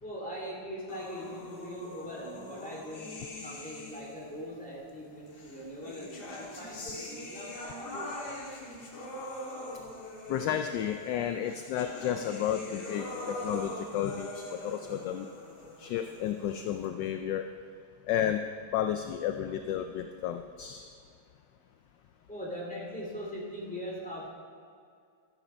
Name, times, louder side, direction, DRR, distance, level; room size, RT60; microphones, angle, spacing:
voice 1, 0.0-8.1 22.3-24.3, equal, 5° left, -4 dB, 2.4 m, -41 dB
sound 1, 0.9-4.3 5.3-16.9, left 1 dB, 55° left, 2.1 m, -43 dB
voice 2, 10.3-15.3 15.8-17.5 18.1-18.4 18.7-20.9, left 10 dB, 75° left, 7 dB, 1.1 m, -32 dB
12.5 x 11.0 x 4.4 m, 2.3 s
omnidirectional pair, 2.2 m